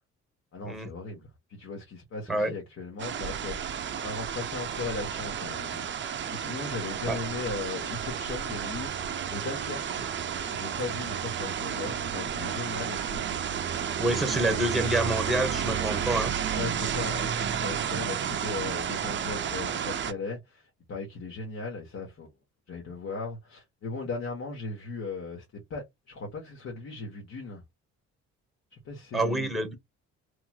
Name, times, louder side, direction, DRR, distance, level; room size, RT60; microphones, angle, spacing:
voice 1, 0.5-10.0 10.5-13.2 16.5-22.3 22.7-27.6 28.7-29.5, left 3 dB, 55° left, 1.1 m, -38 dB
sound 1, 3.0-20.1, right 8 dB, 40° right, 0.5 m, -32 dB
voice 2, 14.0-16.3 17.9-18.0 29.1-29.7, right 1 dB, ahead, 1.0 m, -27 dB
3.1 x 2.9 x 2.3 m
cardioid pair, 90°, 30 cm